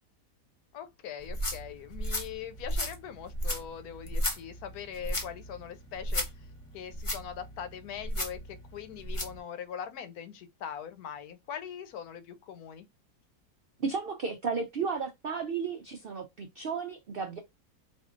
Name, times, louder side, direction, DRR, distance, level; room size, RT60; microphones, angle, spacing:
voice 1, 0.7-6.5 6.7-12.9, left 8 dB, 75° left, 1.2 m, -42 dB
sound 1, 1.2-9.4, equal, 25° left, 0.8 m, -35 dB
voice 2, 13.8-17.4, right 5 dB, 75° right, 0.5 m, -33 dB
4.3 x 2.7 x 2.4 m
omnidirectional pair, 1.7 m